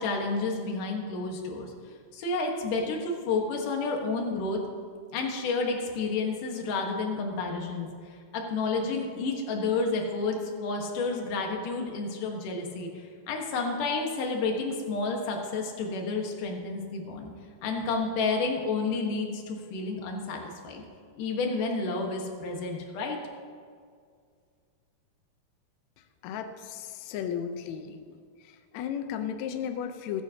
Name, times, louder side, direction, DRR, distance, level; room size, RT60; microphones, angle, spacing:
voice 1, 0.0-1.7 2.1-4.6 5.1-7.9 8.3-17.3 17.6-20.8 21.2-23.2, left 3 dB, 65° left, 1 dB, 2.8 m, -30 dB
voice 2, 26.2-28.0 28.4-30.2, left 8 dB, 85° left, 7 dB, 1.5 m, -34 dB
20.5 x 9.5 x 2.9 m, 2.1 s
omnidirectional pair, 4.4 m